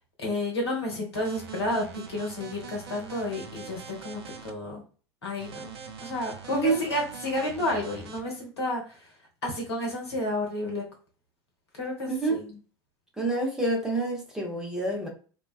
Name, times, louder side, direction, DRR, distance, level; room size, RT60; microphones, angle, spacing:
voice 1, 0.2-4.8 5.2-9.1 9.4-10.8 11.8-12.4, left 1 dB, 80° left, 0 dB, 0.9 m, -31 dB
sound 1, 1.1-4.5 5.4-8.2, right 6 dB, 70° right, 0.5 m, -43 dB
voice 2, 12.1-12.4 13.2-15.1, right 2 dB, 5° right, -1 dB, 0.8 m, -27 dB
2.3 x 2.3 x 2.4 m, 0.39 s
figure-of-eight pair, 80°, 13 cm